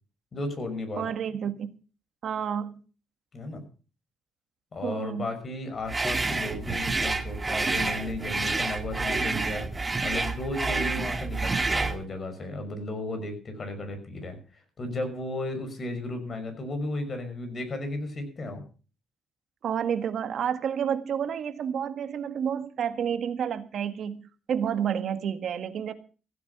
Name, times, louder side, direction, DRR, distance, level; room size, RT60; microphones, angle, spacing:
voice 1, 0.3-1.1 3.3-3.6 4.7-18.6, left 2 dB, 40° left, 7 dB, 5.8 m, -34 dB
voice 2, 1.0-1.7 2.2-2.8 4.8-5.3 19.6-25.9, right 8 dB, 65° right, 9 dB, 1.7 m, -30 dB
sound 1, 5.9-12.0, right 3 dB, 20° right, 1.8 m, -28 dB
15.5 x 8.8 x 6.7 m, 0.37 s
cardioid pair, 90°, 0 cm